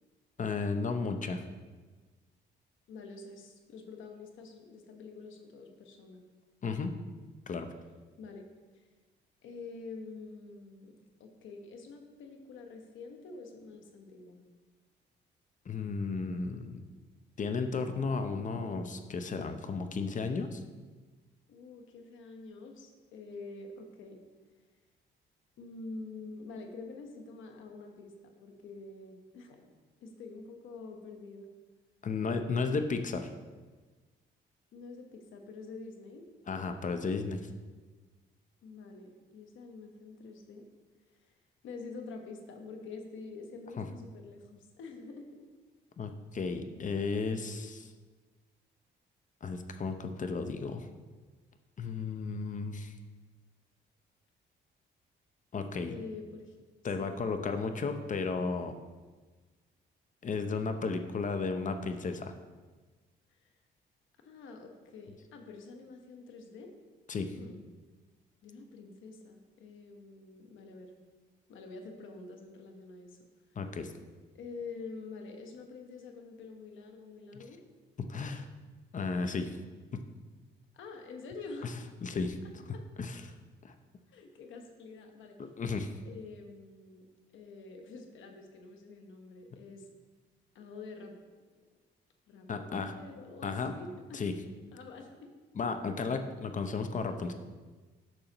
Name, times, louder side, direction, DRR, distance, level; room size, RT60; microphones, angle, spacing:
voice 1, 0.4-1.4 6.6-6.9 7.5-7.7 15.7-16.8 17.4-20.6 32.0-33.3 36.5-37.4 43.8-43.9 46.0-47.9 49.4-50.9 51.8-52.9 55.5-55.9 56.8-58.7 60.2-62.3 67.1-67.3 73.6-73.9 78.0-78.5 78.9-79.6 79.9-80.0 81.6-81.7 82.0-82.4 83.0-83.2 83.6-83.7 85.6-86.0 92.5-92.9 93.4-93.7 94.1-94.3 95.5-97.3, left 4 dB, 40° left, 7 dB, 0.6 m, -34 dB
voice 2, 2.9-6.2 8.2-8.5 8.7-8.9 9.4-14.4 21.5-24.2 25.6-29.7 30.0-31.5 34.7-36.2 38.6-40.7 41.1-41.4 41.6-45.5 55.9-56.6 57.0-57.3 63.3-63.5 64.2-66.7 67.3-67.6 68.4-70.9 71.5-73.3 74.3-77.6 80.7-81.8 82.4-82.8 84.1-85.4 86.0-87.1 87.3-89.9 90.5-91.2 92.3-94.3 94.7-95.3, left 3 dB, 80° left, 4 dB, 1.1 m, -47 dB
8.8 x 6.4 x 3.0 m, 1.3 s
cardioid pair, 90°, 20 cm